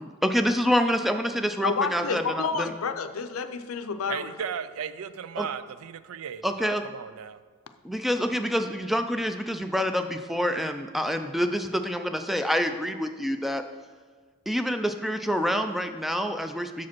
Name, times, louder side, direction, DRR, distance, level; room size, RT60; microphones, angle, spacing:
voice 1, 0.2-2.7 5.4-5.5 6.4-6.8 7.8-13.6 14.5-16.9, equal, ahead, 7 dB, 0.3 m, -27 dB
voice 2, 1.6-4.3, left 5 dB, 80° left, 9 dB, 0.5 m, -29 dB
voice 3, 4.1-7.4, right 7 dB, 80° right, 13 dB, 0.4 m, -36 dB
7.0 x 5.0 x 6.0 m, 1.5 s
head